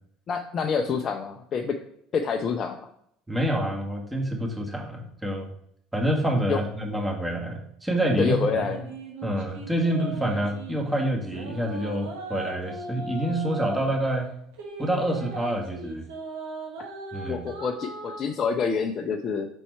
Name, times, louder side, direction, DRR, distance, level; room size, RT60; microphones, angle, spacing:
voice 1, 0.3-1.8 2.1-2.9 6.5-6.6 8.2-8.9 17.3-19.5, left 5 dB, 45° left, 4 dB, 0.6 m, -27 dB
voice 2, 3.3-5.5 5.9-8.4 9.2-14.3 14.8-16.0 17.1-17.4, right 1 dB, 10° right, 0 dB, 1.7 m, -27 dB
sound 1, 8.3-10.8 11.2-13.9 14.5-18.2, right 2 dB, 75° right, 1.5 m, -38 dB
5.4 x 4.2 x 4.6 m, 0.70 s
hypercardioid pair, 75°, 0 cm